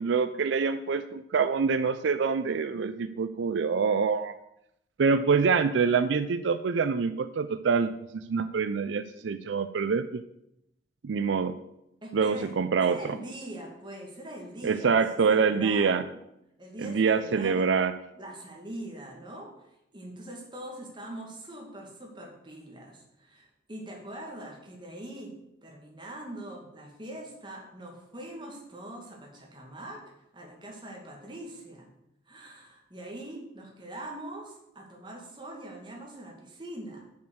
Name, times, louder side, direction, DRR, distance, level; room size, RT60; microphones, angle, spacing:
voice 1, 0.0-4.3 5.0-7.9 8.3-10.2 11.0-11.5 12.1-13.0 14.6-16.0 16.8-17.9, right 5 dB, 85° right, 11 dB, 0.4 m, -25 dB
voice 2, 12.0-16.2 16.6-17.6 18.2-19.5 19.9-25.4 25.6-31.9 32.3-37.0, right 1 dB, 25° right, 0 dB, 2.1 m, -42 dB
7.1 x 6.1 x 6.3 m, 0.81 s
head